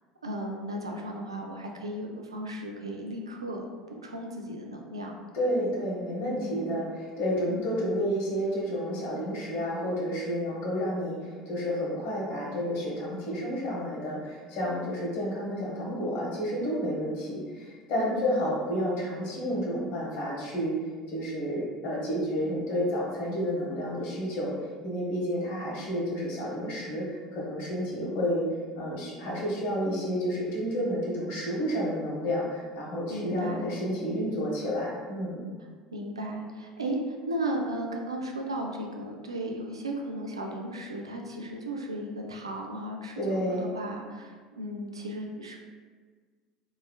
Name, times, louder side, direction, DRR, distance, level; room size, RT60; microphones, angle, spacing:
voice 1, 0.2-5.1 6.2-6.8 7.5-7.7 18.1-18.3 33.1-33.7 35.9-45.6, right 1 dB, 85° right, 1 dB, 0.3 m, -35 dB
voice 2, 5.3-20.7 21.1-24.5 24.8-28.5 28.8-35.4 43.2-43.7, equal, 60° left, -3 dB, 0.8 m, -30 dB
3.0 x 2.3 x 2.3 m, 1.5 s
figure-of-eight pair, 65°, 3 cm